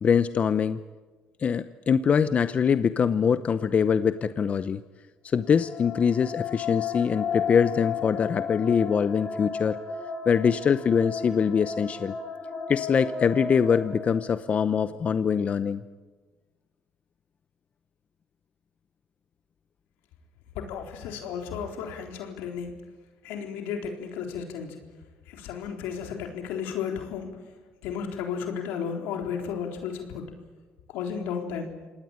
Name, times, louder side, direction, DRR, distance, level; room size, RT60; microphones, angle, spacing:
voice 1, 0.0-0.8 1.4-4.8 5.3-9.8 10.3-12.2 12.7-15.8, left 7 dB, 40° left, 13 dB, 0.8 m, -23 dB
sound 1, 5.4-14.6, left 6 dB, 55° left, 5.7 m, -34 dB
voice 2, 20.5-22.8 23.2-24.8 25.3-27.5 27.8-30.3 30.9-31.7, left 7 dB, 85° left, 3 dB, 3.8 m, -33 dB
27.0 x 19.0 x 8.9 m, 1.3 s
cardioid pair, 90°, 3 cm